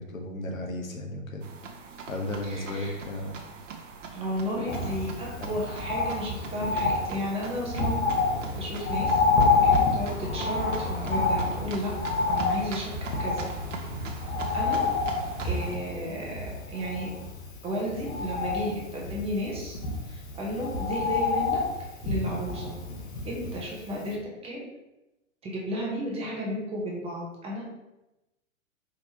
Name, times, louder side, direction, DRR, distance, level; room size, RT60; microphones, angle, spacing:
voice 1, 0.0-1.5 2.0-3.4 5.3-5.5 10.3-10.4, left 1 dB, 80° left, 2 dB, 0.9 m, -35 dB
sound 1, 1.4-15.8, right 5 dB, 65° right, 0.7 m, -42 dB
voice 2, 2.5-2.9 4.1-8.0 8.5-9.2 9.6-11.9 12.2-12.9 13.2-13.4 14.5-14.8 15.4-16.3 16.7-17.1 17.6-19.8 20.1-21.6 22.0-22.7 23.2-24.2 24.4-24.6 25.4-27.6, equal, 15° right, -3 dB, 0.8 m, -33 dB
Bird, 4.7-23.8 24.1-24.2, left 3 dB, 55° left, 1.1 m, -28 dB
4.7 x 3.3 x 2.8 m, 0.97 s
figure-of-eight pair, 110°, 40 cm